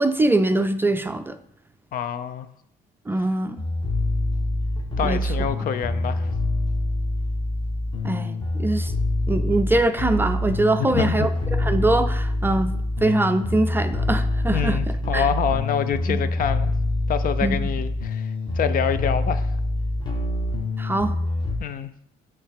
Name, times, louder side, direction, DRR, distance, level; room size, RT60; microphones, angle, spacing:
voice 1, 0.0-1.4 3.1-3.6 5.0-5.2 8.0-8.9 9.3-12.7 13.0-14.8 15.1-15.3 16.1-16.2 17.4-17.6 20.8-21.1, right 2 dB, 10° right, 0.5 m, -23 dB
voice 2, 1.9-2.5 5.0-6.3 10.8-11.3 14.5-16.7 17.1-19.5 21.6-21.9, left 8 dB, 55° left, 0.6 m, -26 dB
sound 1, 3.6-21.6, left 2 dB, 25° left, 1.6 m, -25 dB
8.9 x 3.3 x 6.6 m
cardioid pair, 110°, 17 cm